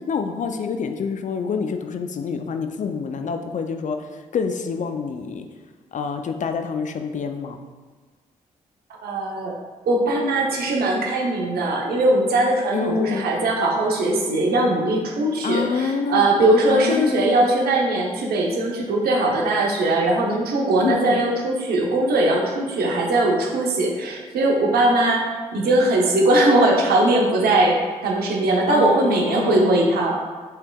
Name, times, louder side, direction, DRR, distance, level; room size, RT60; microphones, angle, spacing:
voice 1, 0.1-5.5 5.9-7.6 12.7-13.3 15.4-16.3 16.7-17.5 20.8-21.2 28.7-29.8, left 5 dB, 50° left, 7 dB, 0.4 m, -27 dB
voice 2, 9.0-9.6 9.9-30.2, right 2 dB, 70° right, -1 dB, 0.8 m, -20 dB
5.5 x 3.4 x 2.3 m, 1.4 s
hypercardioid pair, 45°, 16 cm